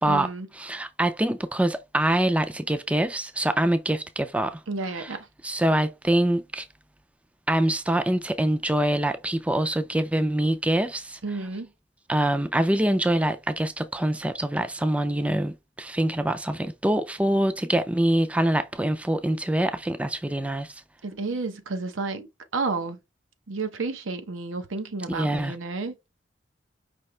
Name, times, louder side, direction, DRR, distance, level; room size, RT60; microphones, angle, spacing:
voice 1, 0.0-0.5 4.7-5.3 11.2-11.7 21.0-22.3 22.5-23.0 23.5-26.0, right 3 dB, 90° right, 0.8 m, -31 dB
voice 2, 0.6-4.6 4.9-5.1 5.4-6.7 7.5-11.2 12.1-20.8 25.1-25.5, right 1 dB, 5° right, 0.4 m, -25 dB
5.4 x 2.8 x 3.2 m
head